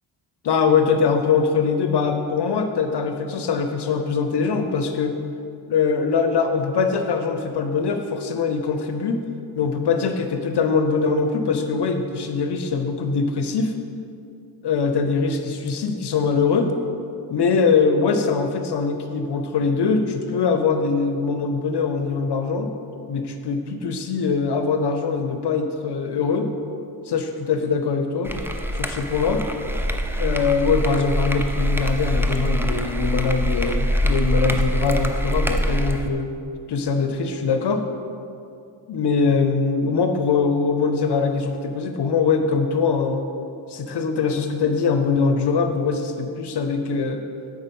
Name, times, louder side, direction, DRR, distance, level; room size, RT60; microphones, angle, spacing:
voice 1, 0.4-5.2 5.7-9.2 9.5-13.7 14.6-16.7 17.3-22.7 23.1-26.6 27.1-28.4 28.7-29.4 30.2-36.4 36.7-37.9 38.9-43.3 43.7-47.2, left 5 dB, 60° left, 6 dB, 0.7 m, -22 dB
sound 1, 28.3-36.1, equal, 5° right, 0.7 m, -24 dB
7.9 x 5.5 x 5.3 m, 2.6 s
supercardioid pair, 45°, 46 cm